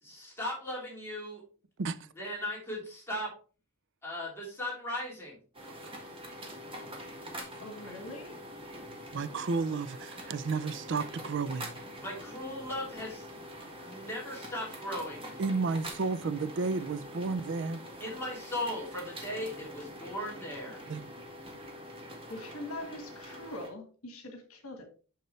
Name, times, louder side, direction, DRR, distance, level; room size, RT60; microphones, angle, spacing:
voice 1, 0.0-1.4 2.2-3.3 4.0-5.4 12.0-13.3 13.8-15.3 18.0-20.8, left 1 dB, 10° left, 2.7 m, -37 dB
sound 1, 5.5-23.7, equal, 25° right, 1.6 m, -45 dB
voice 2, 7.6-8.4 22.3-24.8, left 1 dB, 70° left, 1.6 m, -42 dB
voice 3, 9.1-11.7 15.4-17.8 20.9-21.1, right 4 dB, 55° right, 0.4 m, -32 dB
6.6 x 6.5 x 3.2 m
head